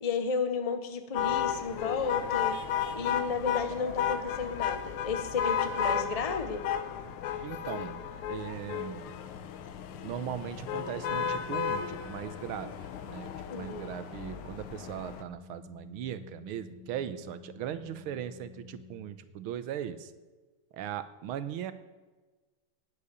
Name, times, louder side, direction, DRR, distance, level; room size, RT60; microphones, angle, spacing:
voice 1, 0.0-2.6 2.9-6.6 13.5-13.9, left 5 dB, 60° left, 8 dB, 0.3 m, -33 dB
sound 1, 1.1-15.2, left 8 dB, 85° left, 1.7 m, -34 dB
voice 2, 7.4-8.0 8.3-9.1 9.9-12.7 13.1-20.1 20.7-21.7, right 10 dB, 80° right, 12 dB, 1.7 m, -38 dB
Organ, 8.8-19.6, left 7 dB, 45° left, 2.0 m, -51 dB
18.5 x 6.9 x 6.8 m, 1.3 s
omnidirectional pair, 2.4 m